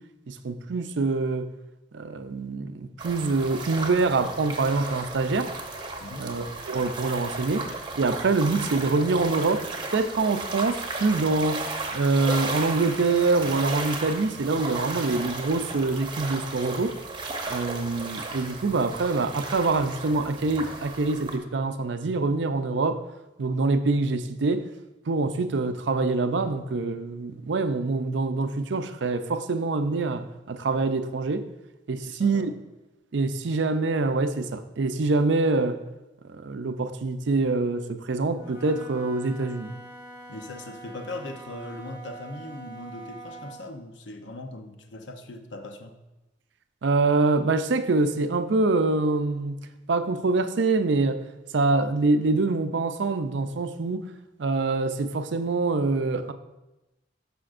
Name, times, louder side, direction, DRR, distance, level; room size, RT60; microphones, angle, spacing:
voice 1, 0.3-1.5 1.9-5.5 6.2-7.7 7.9-11.6 11.9-17.0 17.5-23.0 23.4-24.7 25.1-31.5 31.9-32.5 33.1-35.8 36.3-39.8 46.8-49.6 49.9-51.2 51.5-54.0 54.4-56.3, right 3 dB, 70° right, 0.5 m, -25 dB
sound 1, 3.0-21.4, right 3 dB, 25° right, 0.8 m, -35 dB
voice 2, 6.0-6.4 32.0-32.5 40.3-46.0, left 2 dB, 80° left, 0.7 m, -39 dB
Wind instrument woodwind instrument, 38.3-43.7, right 2 dB, 55° left, 1.7 m, -44 dB
12.5 x 5.1 x 2.5 m
head